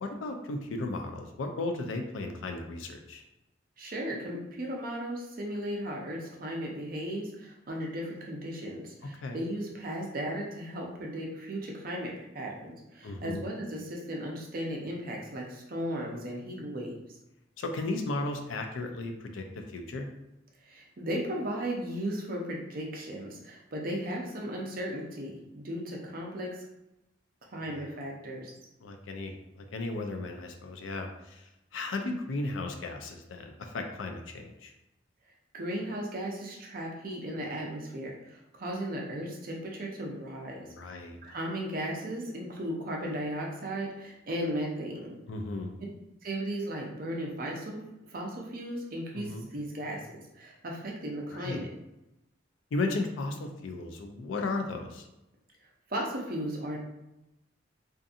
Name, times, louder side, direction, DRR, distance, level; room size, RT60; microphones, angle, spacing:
voice 1, 0.0-3.2 9.0-9.4 13.0-13.4 17.6-20.1 28.8-34.7 40.6-41.2 45.3-45.7 49.1-49.5 51.3-51.7 52.7-55.1, left 2 dB, 80° left, 4 dB, 0.4 m, -35 dB
voice 2, 3.8-16.9 20.7-26.6 27.5-28.5 35.5-40.7 41.2-45.2 46.2-47.8 48.1-50.0 50.3-51.7 55.9-56.8, right 1 dB, 45° right, -1 dB, 0.6 m, -36 dB
2.6 x 2.5 x 2.4 m, 0.91 s
head